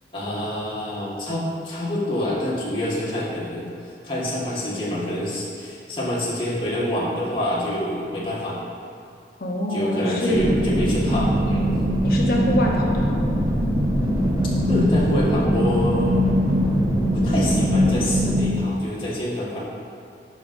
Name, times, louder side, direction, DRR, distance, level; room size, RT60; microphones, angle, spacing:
voice 1, 0.1-3.7 4.0-8.6 9.7-11.7 14.7-16.1 17.1-19.6, left 1 dB, 30° left, -8 dB, 1.6 m, -26 dB
voice 2, 9.4-10.4 12.0-13.2, left 1 dB, 55° left, -2 dB, 0.9 m, -24 dB
sound 1, 10.3-18.4, equal, 20° right, 1.1 m, -21 dB
11.0 x 5.3 x 2.6 m, 2.5 s
head